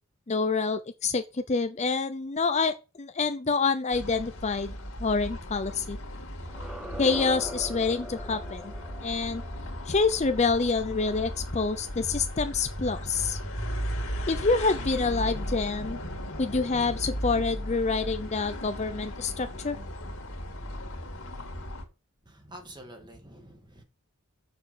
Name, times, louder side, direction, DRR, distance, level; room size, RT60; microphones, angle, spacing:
voice 1, 0.3-4.7 5.0-6.0 7.0-8.7 9.0-9.4 9.9-13.4 14.3-16.0 16.4-19.8, left 4 dB, 30° left, 0.6 m, -27 dB
sound 1, 3.9-21.8, equal, 60° left, 2.3 m, -36 dB
sound 2, 6.4-11.4, right 1 dB, 5° right, 1.0 m, -42 dB
voice 2, 22.3-23.8, right 1 dB, 20° right, 1.9 m, -47 dB
6.9 x 6.7 x 6.9 m
head